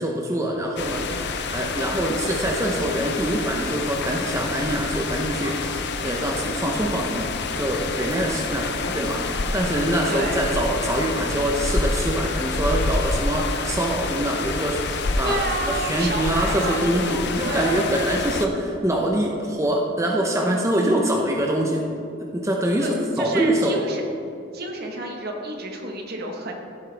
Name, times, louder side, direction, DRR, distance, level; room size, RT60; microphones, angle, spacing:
voice 1, 0.0-7.3 7.5-21.8 22.2-23.8, right 1 dB, 15° right, -1 dB, 0.8 m, -24 dB
sound 1, 0.8-18.5, left 3 dB, 60° left, 0.6 m, -28 dB
voice 2, 10.1-10.4 15.2-17.9 22.8-22.9 23.2-24.0 24.5-26.5, right 2 dB, 55° right, 2 dB, 1.3 m, -30 dB
15.0 x 7.8 x 3.4 m, 2.6 s
head